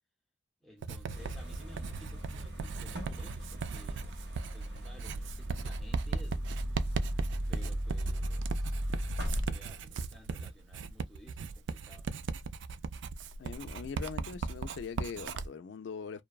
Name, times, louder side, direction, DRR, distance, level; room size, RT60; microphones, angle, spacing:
voice 1, 0.6-6.5 7.5-8.9 9.3-12.1, left 1 dB, ahead, 0.6 m, -56 dB
Writing, 0.8-15.5, right 5 dB, 75° right, 0.3 m, -38 dB
sound 1, 1.1-9.5, equal, 60° right, 0.9 m, -37 dB
voice 2, 13.4-16.2, left 6 dB, 75° left, 0.3 m, -41 dB
2.6 x 2.1 x 2.2 m
head